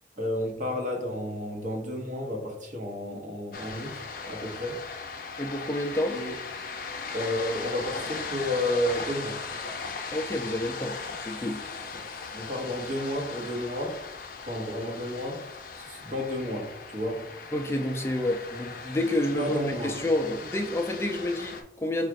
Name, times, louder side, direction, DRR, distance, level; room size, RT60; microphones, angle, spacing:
voice 1, 0.2-4.8 6.1-6.3 7.1-9.4 11.9-12.1 12.3-14.0 14.4-15.5 15.8-17.3 19.4-20.0, left 1 dB, 45° right, 1.0 m, -31 dB
sound 1, 3.5-21.6, left 4 dB, 50° left, 0.6 m, -38 dB
voice 2, 5.4-6.2 10.1-11.6 17.5-19.5 19.8-22.1, left 1 dB, 15° left, 0.3 m, -29 dB
4.9 x 2.4 x 4.5 m
head